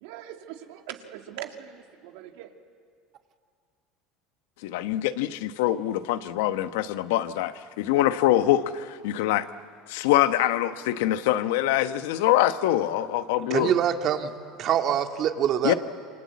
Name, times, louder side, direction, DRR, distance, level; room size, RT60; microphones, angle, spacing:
voice 1, 0.0-2.5, right 11 dB, 80° right, 2.2 m, -41 dB
voice 2, 4.6-9.5 9.9-13.7 15.6-15.7, left 13 dB, 85° left, 1.0 m, -24 dB
voice 3, 13.5-14.3 14.6-15.7, right 9 dB, 50° right, 2.0 m, -24 dB
28.0 x 24.5 x 8.5 m
supercardioid pair, 120°, 0 cm